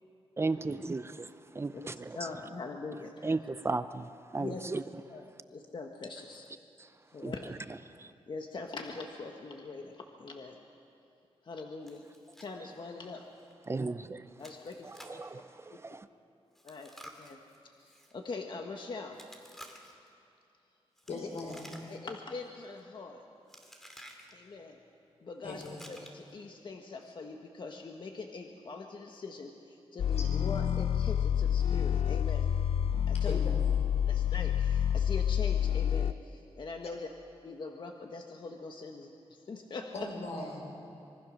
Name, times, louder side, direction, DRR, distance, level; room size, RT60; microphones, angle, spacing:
voice 1, 0.4-2.2 3.2-4.8 6.8-6.9 7.2-7.3 8.0-8.1 13.7-14.3 14.8-16.1, right 3 dB, 25° right, 12 dB, 0.6 m, -35 dB
voice 2, 2.1-3.3 4.4-4.7 5.1-6.4 7.1-7.5 8.3-10.6 11.4-12.0 12.4-13.2 14.4-14.9 15.7-15.8 16.6-16.9 17.2-17.4 17.8-19.2 21.9-23.2 24.3-24.8 25.2-32.5 33.1-33.5 34.1-37.1 37.4-40.1, left 3 dB, 45° left, 3 dB, 1.5 m, -42 dB
Chewing mastication, 11.9-12.5 12.8-12.9 13.4-13.5 14.4-15.3 16.5-18.1 19.1-20.1 21.0-22.1 22.4-22.8 23.5-24.3 25.5-26.3, equal, 5° left, 2.3 m, -53 dB
voice 3, 21.1-21.7 25.4-25.8 30.1-30.3 33.1-33.8 39.9-40.6, left 2 dB, 90° left, 0 dB, 5.8 m, -40 dB
sound 1, 30.0-36.1, left 9 dB, 65° left, 0.5 m, -28 dB
25.5 x 22.5 x 6.5 m, 2.6 s
wide cardioid pair, 140°, 11 cm